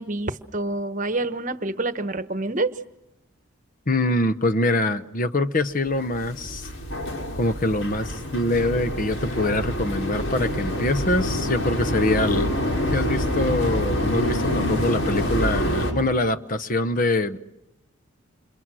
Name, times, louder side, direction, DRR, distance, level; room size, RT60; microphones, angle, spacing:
voice 1, 0.0-2.7, right 2 dB, 40° right, 11 dB, 1.1 m, -27 dB
voice 2, 3.9-6.7 7.4-12.5 12.9-17.4, left 2 dB, 40° left, 11 dB, 0.9 m, -24 dB
sound 1, 5.9-15.9, left 1 dB, 65° left, 5.9 m, -26 dB
30.0 x 27.0 x 6.3 m, 0.89 s
head